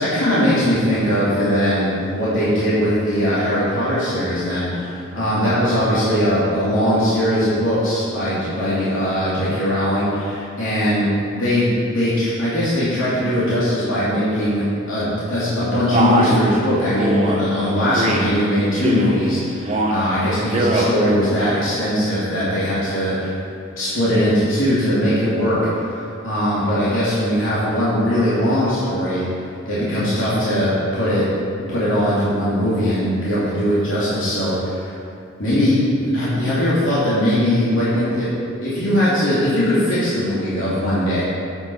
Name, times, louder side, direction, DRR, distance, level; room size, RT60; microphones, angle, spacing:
voice 1, 0.0-11.1 11.3-23.4 23.8-29.2 29.6-31.2 31.7-35.0 35.4-38.3 38.6-41.2, equal, 85° left, -10 dB, 2.9 m, -20 dB
Male speech man speaking, 15.9-16.4 17.0-17.4 18.0-18.3 18.8-19.2 19.6-20.0 20.4-20.9, right 1 dB, 35° right, 1.1 m, -21 dB
8.9 x 8.2 x 5.6 m, 2.4 s
head